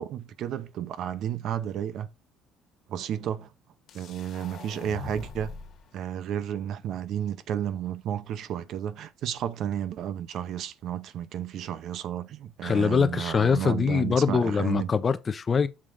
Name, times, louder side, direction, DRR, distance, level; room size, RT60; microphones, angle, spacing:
voice 1, 0.0-2.1 2.9-3.5 3.9-5.5 5.9-14.9, right 10 dB, 55° right, 0.6 m, -32 dB
sound 1, 3.9-5.8, left 4 dB, 55° left, 1.4 m, -42 dB
voice 2, 12.6-15.7, left 5 dB, 25° left, 0.6 m, -23 dB
7.4 x 3.8 x 5.0 m
cardioid pair, 140°, 0 cm